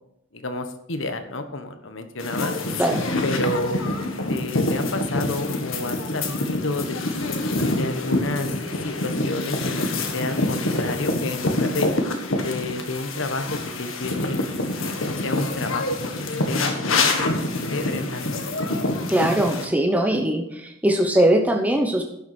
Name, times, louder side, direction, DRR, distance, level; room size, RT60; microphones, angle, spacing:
voice 1, 0.3-2.6 3.2-3.9 4.3-7.1 7.8-8.5 8.8-9.9 10.1-11.9 12.4-13.5 13.8-14.4 14.8-15.0 15.2-15.9 16.2-17.4 17.7-18.4, left 2 dB, 70° left, 8 dB, 1.3 m, -30 dB
sound 1, 2.2-19.7, left 2 dB, 90° left, 1.7 m, -26 dB
sound 2, 5.4-13.5, left 2 dB, 55° left, 2.7 m, -43 dB
voice 2, 19.1-22.0, right 1 dB, 10° right, 3 dB, 0.9 m, -20 dB
11.5 x 7.1 x 6.3 m, 0.81 s
head